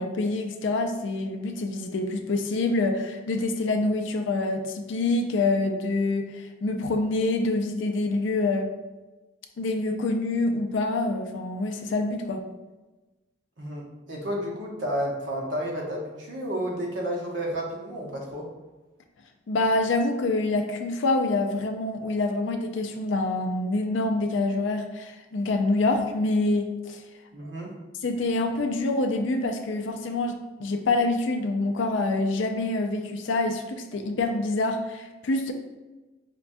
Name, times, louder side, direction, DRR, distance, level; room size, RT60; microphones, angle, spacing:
voice 1, 0.0-8.7 9.6-12.4 19.5-27.0 28.0-35.5, left 2 dB, 80° left, 6 dB, 0.4 m, -26 dB
voice 2, 13.6-18.5 27.3-27.7, equal, 75° right, -2 dB, 0.9 m, -31 dB
5.0 x 2.2 x 2.6 m, 1.2 s
head